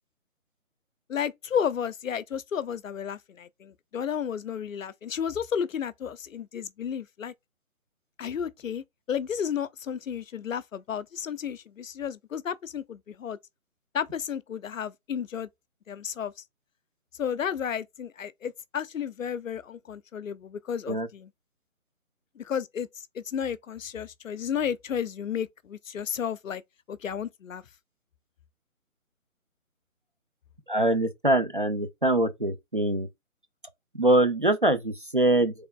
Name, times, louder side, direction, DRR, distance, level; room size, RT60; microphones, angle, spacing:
voice 1, 1.1-7.3 8.2-13.4 13.9-15.5 15.9-16.4 17.2-21.3 22.4-26.6 26.9-27.6, left 8 dB, 65° left, 0.5 m, -32 dB
voice 2, 30.7-33.1 34.0-35.5, right 1 dB, 40° right, 0.5 m, -23 dB
3.8 x 3.3 x 2.2 m
figure-of-eight pair, 160°, 43 cm